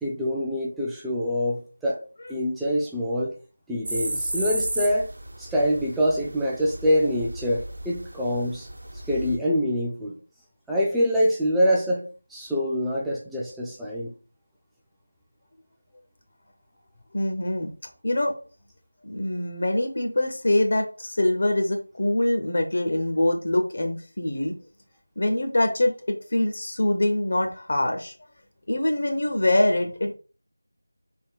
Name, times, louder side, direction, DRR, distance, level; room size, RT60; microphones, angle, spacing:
voice 1, 0.0-2.0 2.3-3.3 3.7-5.1 5.4-8.7 9.1-10.2 10.7-14.1, equal, ahead, -5 dB, 0.4 m, -25 dB
sound 1, 3.9-9.4, right 1 dB, 55° right, 0.9 m, -34 dB
voice 2, 17.1-17.7 18.0-18.3 19.0-24.5 25.2-28.1 28.7-30.1, left 1 dB, 50° left, 4 dB, 0.6 m, -24 dB
3.4 x 2.9 x 4.4 m, 0.38 s
figure-of-eight pair, 170°, 0 cm